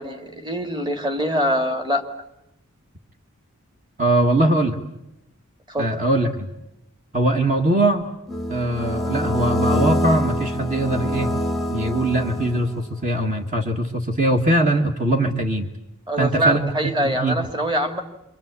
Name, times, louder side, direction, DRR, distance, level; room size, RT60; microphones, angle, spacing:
voice 1, 0.0-2.0 5.7-5.9 16.1-18.0, equal, 20° right, 6 dB, 2.1 m, -23 dB
voice 2, 4.0-4.8 5.8-6.5 7.1-8.1 8.5-11.4 11.7-15.7 16.2-17.4, right 1 dB, 35° right, 3 dB, 1.8 m, -21 dB
sound 1, 8.3-12.9, left 1 dB, ahead, 1.1 m, -25 dB
27.0 x 23.5 x 8.3 m, 0.89 s
head